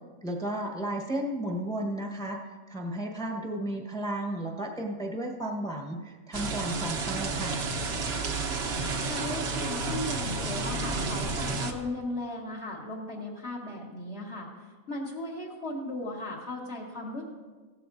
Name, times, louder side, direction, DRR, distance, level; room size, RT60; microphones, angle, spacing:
voice 1, 0.2-7.6, right 1 dB, 5° left, 1 dB, 1.0 m, -33 dB
sound 1, 6.3-11.7, right 3 dB, 50° right, 1.1 m, -31 dB
voice 2, 9.0-17.2, left 2 dB, 50° left, -3 dB, 1.7 m, -37 dB
16.5 x 13.5 x 2.6 m, 1.4 s
omnidirectional pair, 1.5 m